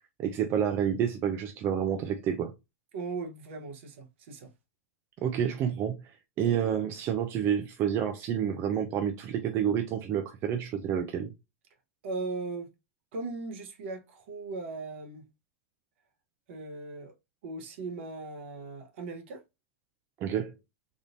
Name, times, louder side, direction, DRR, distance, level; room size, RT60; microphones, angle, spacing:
voice 1, 0.2-2.5 5.2-6.0 6.4-11.3 20.2-20.5, right 8 dB, 35° right, 0.5 m, -29 dB
voice 2, 2.9-4.5 12.0-12.7 13.1-15.3 16.5-17.1 17.4-19.4, right 3 dB, 60° right, 1.0 m, -38 dB
3.5 x 2.5 x 2.5 m
hypercardioid pair, 110°, 7 cm